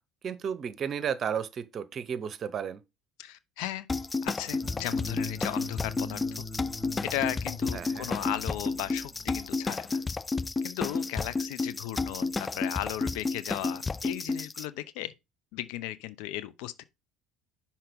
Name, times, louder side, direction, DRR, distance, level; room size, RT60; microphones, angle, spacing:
voice 1, 0.2-2.8 7.7-8.1, right 7 dB, 45° right, 0.8 m, -33 dB
voice 2, 3.2-3.9 4.2-6.4 7.0-10.0 10.6-15.1 15.5-16.8, left 13 dB, 70° left, 0.7 m, -36 dB
sound 1, 3.9-14.7, left 3 dB, 20° left, 0.3 m, -31 dB
sound 2, 4.6-9.7, left 2 dB, 5° left, 1.2 m, -42 dB
5.9 x 4.4 x 5.2 m
hypercardioid pair, 70°, 0 cm